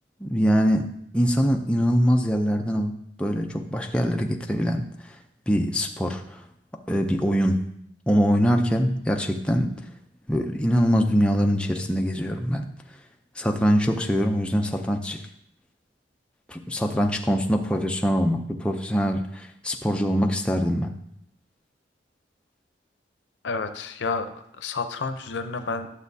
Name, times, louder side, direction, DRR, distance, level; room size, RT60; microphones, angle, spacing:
voice 1, 0.2-0.9 1.1-2.9 3.2-4.9 5.5-6.4 6.9-7.6 8.1-9.8 10.3-12.7 13.4-15.2 16.5-20.9, equal, 5° left, 2 dB, 0.5 m, -23 dB
voice 2, 23.4-25.9, left 4 dB, 85° left, 9 dB, 0.6 m, -30 dB
11.5 x 7.1 x 2.7 m, 0.76 s
head